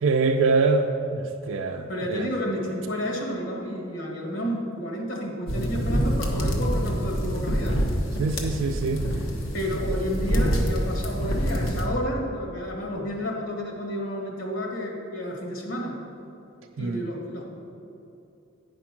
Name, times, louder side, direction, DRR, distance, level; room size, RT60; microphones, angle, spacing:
voice 1, 0.0-0.9 1.1-2.3 8.2-9.0 16.8-17.0, right 4 dB, 80° right, 3 dB, 0.4 m, -24 dB
voice 2, 1.9-7.8 9.5-16.0 16.8-17.4, equal, 70° left, -1 dB, 1.6 m, -31 dB
sound 1, 5.5-11.9, equal, 85° left, 1.2 m, -26 dB
9.6 x 5.2 x 5.9 m, 2.8 s
head